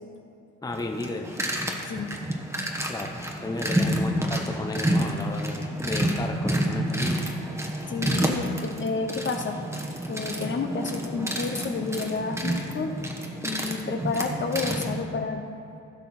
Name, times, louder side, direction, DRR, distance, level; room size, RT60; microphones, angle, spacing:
voice 1, 0.6-1.4 2.9-7.3, left 2 dB, 10° left, 3 dB, 0.8 m, -33 dB
sound 1, 0.7-15.1, right 1 dB, 10° right, 1.3 m, -29 dB
voice 2, 7.9-9.6 10.1-13.0 13.4-15.5, left 4 dB, 40° left, 5 dB, 0.9 m, -30 dB
16.0 x 5.7 x 4.3 m, 2.7 s
cardioid pair, 90°, 30 cm